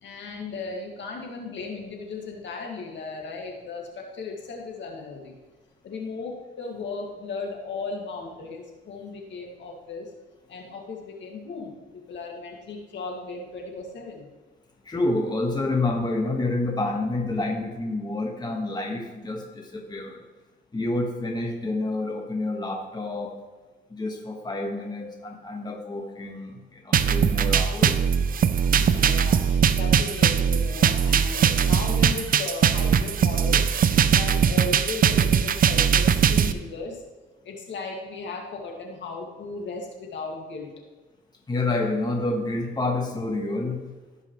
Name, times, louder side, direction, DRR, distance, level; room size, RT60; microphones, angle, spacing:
voice 1, 0.0-5.4 5.8-10.1 10.5-11.8 12.1-14.3 28.7-33.7 34.1-37.0 37.4-40.7, left 3 dB, 65° left, 0 dB, 2.1 m, -36 dB
voice 2, 14.8-20.2 20.7-23.4 23.9-28.1 41.5-43.9, left 2 dB, 20° left, 1 dB, 1.5 m, -28 dB
sound 1, 26.9-36.5, right 7 dB, 45° right, 0.5 m, -21 dB
16.5 x 5.6 x 3.2 m, 1.3 s
cardioid pair, 90°, 20 cm